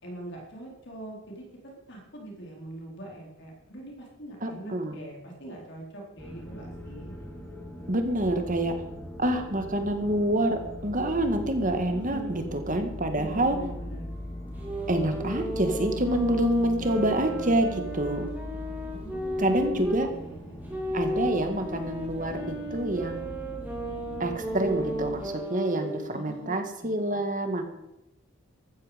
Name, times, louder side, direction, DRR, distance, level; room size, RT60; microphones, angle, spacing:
voice 1, 0.0-7.1 11.9-12.6 13.0-14.1 18.9-20.9 24.6-25.0 26.1-27.2, right 1 dB, 55° left, -1 dB, 4.2 m, -43 dB
voice 2, 4.4-5.0 7.9-8.7 9.2-13.6 14.9-18.3 19.4-20.1 20.9-23.3 24.2-27.7, right 1 dB, 40° right, 6 dB, 1.8 m, -27 dB
sound 1, 6.2-25.3, equal, 10° left, 2.9 m, -40 dB
sound 2, 14.6-20.1 20.7-26.0, equal, 10° right, 3.4 m, -34 dB
14.5 x 13.0 x 5.2 m, 0.91 s
head